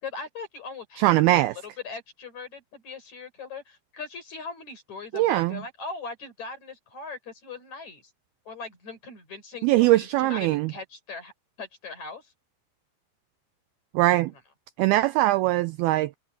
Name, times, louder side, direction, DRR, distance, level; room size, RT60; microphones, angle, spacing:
voice 1, 0.0-1.4 1.8-8.1 8.5-11.3 11.6-12.3, left 4 dB, 40° left, 6.5 m, -40 dB
voice 2, 1.0-1.5 5.1-5.6 9.6-10.7 13.9-14.3 14.8-16.2, right 17 dB, 85° right, 2.2 m, -21 dB
omnidirectional pair, 4.9 m